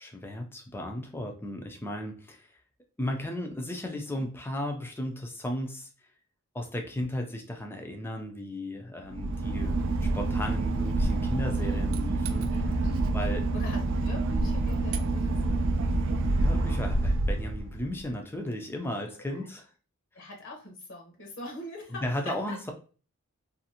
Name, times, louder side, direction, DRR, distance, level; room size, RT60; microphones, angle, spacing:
voice 1, 0.0-2.5 3.0-5.9 6.5-12.7 13.1-13.4 16.4-19.7 20.2-20.3 22.0-22.7, left 1 dB, 10° left, 3 dB, 0.4 m, -35 dB
Boat Water vehicle / Engine, 9.0-18.0, right 2 dB, 60° right, 0.3 m, -27 dB
voice 2, 12.8-15.7 16.3-16.8 19.2-19.5 20.1-22.6, equal, 55° left, 1 dB, 0.7 m, -42 dB
2.5 x 2.5 x 2.7 m, 0.37 s
head